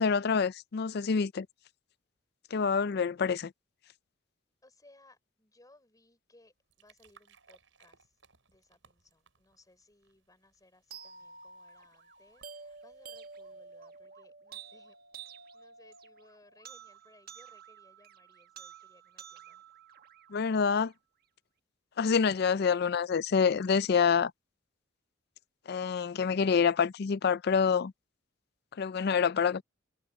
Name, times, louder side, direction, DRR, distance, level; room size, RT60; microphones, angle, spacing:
voice 1, 0.0-1.5 2.5-3.5 20.3-20.9 22.0-24.3 25.7-27.9 28.8-29.6, left 6 dB, 55° left, 0.4 m, -27 dB
voice 2, 4.6-8.2 8.5-15.0 15.5-19.6, left 2 dB, 20° left, 4.6 m, -63 dB
sound 1, 6.4-14.0, right 5 dB, 85° right, 5.7 m, -66 dB
sound 2, 10.9-20.9, right 6 dB, 50° right, 1.4 m, -50 dB
head